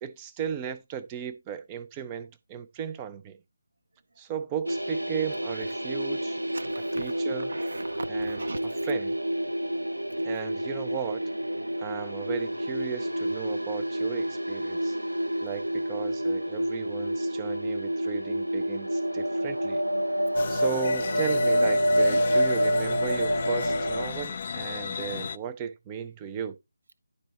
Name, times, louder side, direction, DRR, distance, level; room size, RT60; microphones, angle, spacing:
voice 1, 0.0-3.4 4.2-6.4 6.9-7.5 8.1-8.4 8.8-9.2 10.2-11.2 11.8-15.0 15.4-19.8 20.5-26.6, right 8 dB, 20° right, 0.7 m, -35 dB
sound 1, 4.7-24.1, equal, 85° right, 0.5 m, -28 dB
voice 2, 6.5-8.9 15.1-15.2, right 3 dB, 60° right, 1.1 m, -40 dB
sound 2, 20.3-25.4, left 6 dB, 35° left, 0.4 m, -34 dB
11.0 x 4.0 x 4.2 m
figure-of-eight pair, 155°, 0 cm